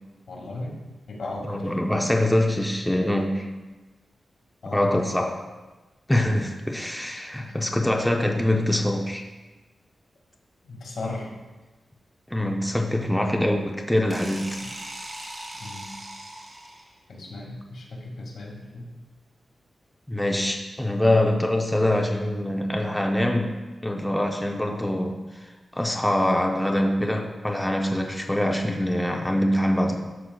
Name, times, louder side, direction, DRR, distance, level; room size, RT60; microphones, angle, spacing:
voice 1, 0.3-0.8 1.1-1.8 4.6-5.1 10.6-11.3 14.6-14.7 15.6-15.9 17.1-18.9, left 2 dB, 80° left, -3 dB, 1.9 m, -36 dB
voice 2, 1.4-3.5 4.7-5.5 6.1-9.2 12.3-14.6 20.1-25.2 25.7-30.1, left 1 dB, 5° left, 1 dB, 0.6 m, -24 dB
sound 1, 14.1-17.0, right 1 dB, 30° right, 1.2 m, -39 dB
11.5 x 6.2 x 2.3 m, 1.2 s
wide cardioid pair, 125°, 0 cm